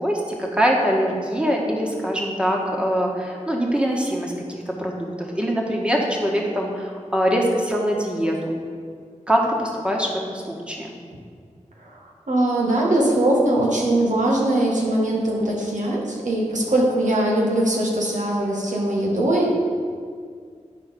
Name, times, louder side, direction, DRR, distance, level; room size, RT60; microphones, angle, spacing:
voice 1, 0.0-5.1 5.3-8.6 9.3-10.9, equal, 10° right, -2 dB, 1.7 m, -23 dB
voice 2, 12.3-19.6, right 1 dB, 75° right, -3 dB, 1.7 m, -21 dB
10.0 x 4.4 x 5.4 m, 2.1 s
cardioid pair, 40°, 13 cm